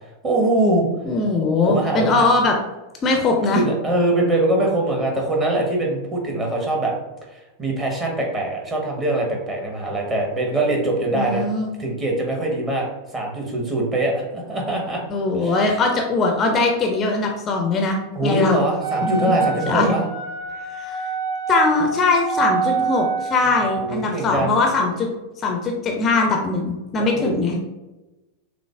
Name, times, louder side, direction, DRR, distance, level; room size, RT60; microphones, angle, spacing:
voice 1, 0.2-0.9 1.5-2.3 3.5-6.9 7.3-11.4 11.8-12.9 13.1-15.0 15.3-15.8 18.1-20.0 23.7-24.6 27.0-27.3, right 1 dB, 20° right, -1 dB, 1.0 m, -23 dB
voice 2, 1.1-2.5 3.0-3.6 11.1-11.7 15.1-18.6 19.0-19.9 20.7-21.0 21.5-25.1 25.4-27.6, left 3 dB, 25° left, 2 dB, 0.5 m, -21 dB
Wind instrument woodwind instrument, 18.8-23.8, right 5 dB, 80° right, 1.2 m, -26 dB
6.1 x 2.0 x 2.3 m, 1.1 s
figure-of-eight pair, 90°, 0 cm